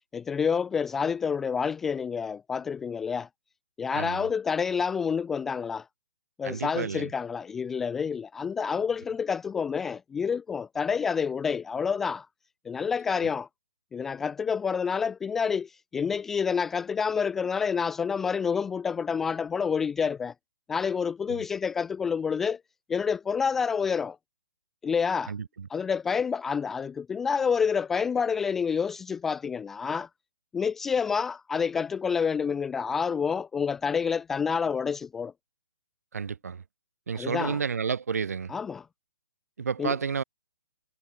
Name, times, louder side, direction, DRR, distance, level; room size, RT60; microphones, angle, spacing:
voice 1, 0.1-3.3 3.8-5.8 6.4-12.3 12.7-13.5 13.9-20.3 20.7-22.6 22.9-24.2 24.8-25.3 25.7-30.1 30.5-35.3 37.1-37.6 38.5-38.9 39.8-39.9, left 6 dB, 5° left, 0.3 m, -28 dB
voice 2, 3.9-4.3 6.4-7.1 21.3-21.5 25.3-25.7 36.1-36.6 37.1-38.5 39.6-40.2, right 6 dB, 65° right, 4.1 m, -31 dB
hypercardioid pair, 180°, 9 cm